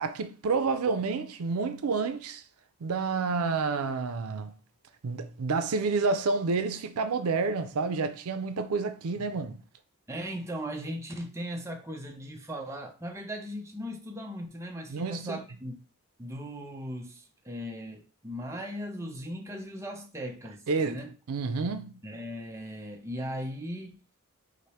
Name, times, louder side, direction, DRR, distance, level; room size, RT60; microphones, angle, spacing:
voice 1, 0.0-2.4 2.8-4.5 5.0-9.6 14.9-15.4 20.7-21.0 21.3-22.0, right 4 dB, 90° right, 0.5 m, -29 dB
voice 2, 10.1-15.8 16.2-21.1 22.0-24.0, equal, 15° right, 0.5 m, -38 dB
4.9 x 2.1 x 4.2 m
head